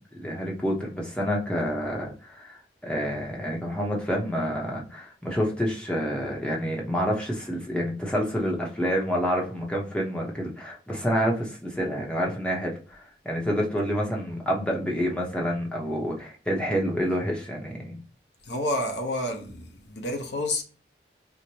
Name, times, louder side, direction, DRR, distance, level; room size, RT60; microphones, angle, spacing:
voice 1, 0.0-2.6 2.8-18.0, equal, 5° left, 0.8 m, -28 dB
voice 2, 18.5-20.6, left 1 dB, 80° left, 0.8 m, -29 dB
4.6 x 2.1 x 2.8 m
head